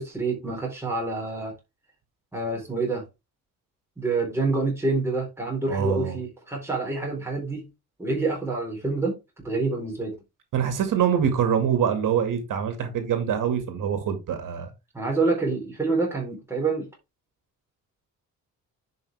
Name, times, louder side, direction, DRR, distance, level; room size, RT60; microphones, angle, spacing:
voice 1, 0.0-1.5 2.3-3.0 4.0-7.7 8.0-9.2 9.4-10.1 14.9-16.9, right 3 dB, 10° right, 4.1 m, -27 dB
voice 2, 5.7-6.2 10.5-14.7, right 8 dB, 75° right, 2.1 m, -24 dB
10.5 x 5.4 x 3.5 m
wide cardioid pair, 175°, 33 cm